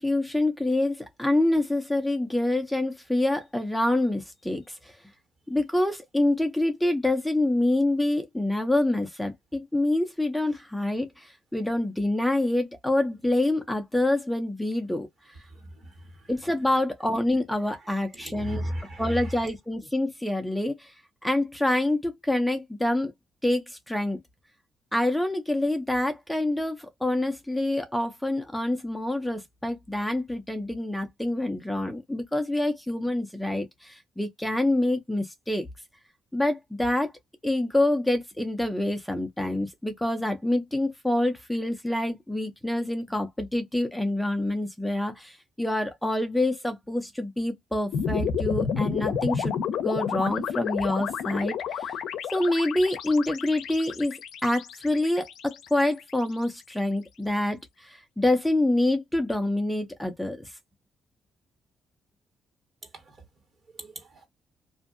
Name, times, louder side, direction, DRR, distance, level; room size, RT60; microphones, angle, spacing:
voice 1, 0.0-4.9 5.5-15.1 16.3-18.7 19.0-20.9 21.2-23.1 23.4-24.2 24.9-35.7 36.3-37.1 37.4-52.0 52.3-60.5, left 1 dB, 5° left, 0.6 m, -26 dB
voice 2, 15.5-16.1 18.1-19.4 63.1-63.2 63.8-64.3, equal, 50° right, 1.4 m, -35 dB
sound 1, 47.9-56.2, left 7 dB, 80° left, 0.5 m, -31 dB
2.6 x 2.5 x 2.5 m
cardioid pair, 90°, 0 cm